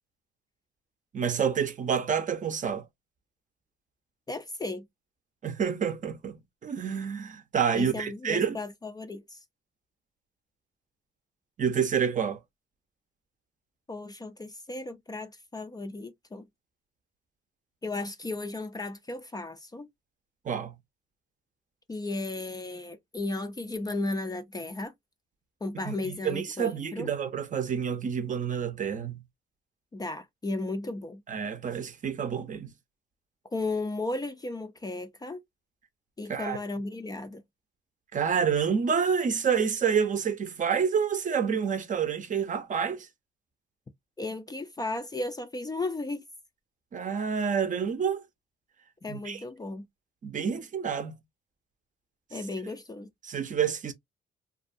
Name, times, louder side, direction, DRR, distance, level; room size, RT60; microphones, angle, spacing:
voice 1, 1.1-2.8 5.4-8.6 11.6-12.4 20.4-20.7 25.8-29.2 31.3-32.7 36.3-36.6 38.1-43.1 46.9-48.2 49.1-49.4 50.2-51.1 53.2-53.9, right 7 dB, 40° right, 0.6 m, -28 dB
voice 2, 4.3-4.9 7.7-9.4 13.9-16.4 17.8-19.9 21.9-24.9 25.6-27.1 29.9-31.2 33.5-35.4 36.2-37.4 44.2-46.2 49.0-49.9 52.3-53.1, left 2 dB, 20° left, 0.4 m, -35 dB
2.5 x 2.2 x 2.5 m
cardioid pair, 90°, 20 cm